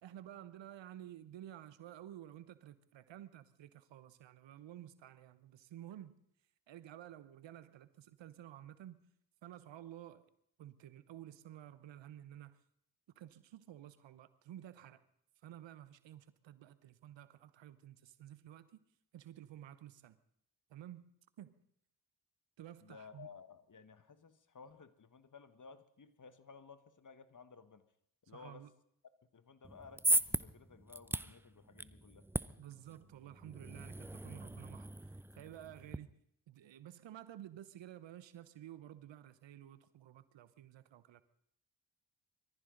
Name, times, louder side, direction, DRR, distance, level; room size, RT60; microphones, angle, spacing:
voice 1, 0.0-6.2 6.7-9.0 9.4-10.2 10.6-12.6 13.1-15.0 15.4-18.8 19.1-20.2 20.7-21.1 21.4-21.5 22.6-23.3 28.3-28.7 32.6-36.1 36.5-41.2, right 12 dB, 80° right, 1.0 m, -52 dB
voice 2, 22.8-27.8 28.3-28.6 29.3-32.3, left 5 dB, 45° left, 1.4 m, -56 dB
sound 1, 29.6-36.0, right 1 dB, 5° right, 0.6 m, -38 dB
23.0 x 14.5 x 3.9 m
supercardioid pair, 40°, 44 cm